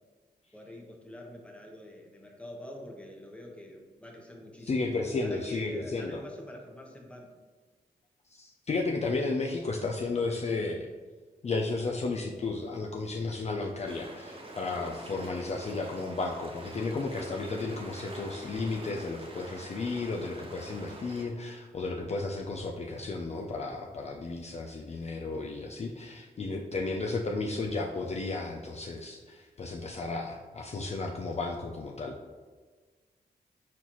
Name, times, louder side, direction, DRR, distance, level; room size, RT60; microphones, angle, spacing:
voice 1, 0.5-4.8 5.1-7.4, left 1 dB, 5° left, 0 dB, 1.0 m, -45 dB
voice 2, 4.7-6.2 8.3-10.9 11.4-32.2, left 3 dB, 40° left, 0 dB, 0.5 m, -33 dB
sound 1, 13.9-21.2, right 1 dB, 35° right, 0.9 m, -45 dB
4.3 x 4.0 x 3.0 m, 1.4 s
cardioid pair, 55°, 17 cm